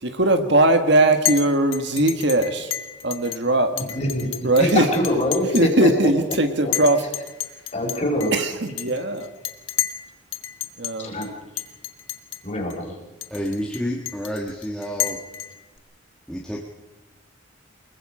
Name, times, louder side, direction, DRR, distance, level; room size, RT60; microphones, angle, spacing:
voice 1, 0.0-2.7 3.0-3.7 4.4-4.9 5.5-7.0 8.3-9.3 10.8-11.1, right 1 dB, 60° right, 7 dB, 1.7 m, -19 dB
Chink clink, 1.2-1.4 1.7-3.4 3.8-5.7 6.0-6.4 6.7-10.0 10.3-10.9 11.2-11.3 11.6-12.4 12.7-12.8 13.2-15.8, left 11 dB, 90° left, 1.3 m, -30 dB
voice 2, 3.8-5.9 7.7-8.3 11.0-11.3 12.4-13.0, left 1 dB, 35° left, 1 dB, 4.5 m, -24 dB
voice 3, 13.3-15.2 16.3-16.6, equal, 5° left, -3 dB, 1.6 m, -29 dB
24.0 x 21.5 x 5.0 m, 1.1 s
head